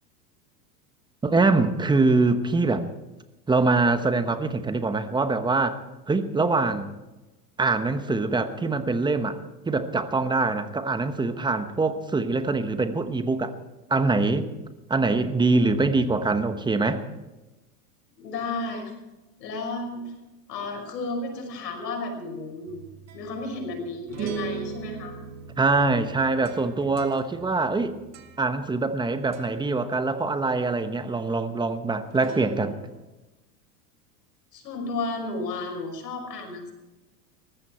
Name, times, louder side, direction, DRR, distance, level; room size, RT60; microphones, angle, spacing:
voice 1, 1.2-2.9 3.5-5.8 6.1-6.9 7.6-9.4 9.7-13.5 13.9-14.5 14.9-17.0 25.6-28.0 28.4-32.8, right 3 dB, 10° right, 10 dB, 1.0 m, -24 dB
voice 2, 18.2-18.9 19.4-20.0 20.5-22.9 23.1-25.1 34.5-36.7, left 3 dB, 85° left, 2 dB, 5.7 m, -33 dB
sound 1, 22.7-29.0 29.3-29.7 32.1-33.0, right 6 dB, 35° right, 1.9 m, -39 dB
19.0 x 14.5 x 4.4 m, 1.1 s
hypercardioid pair, 115°, 48 cm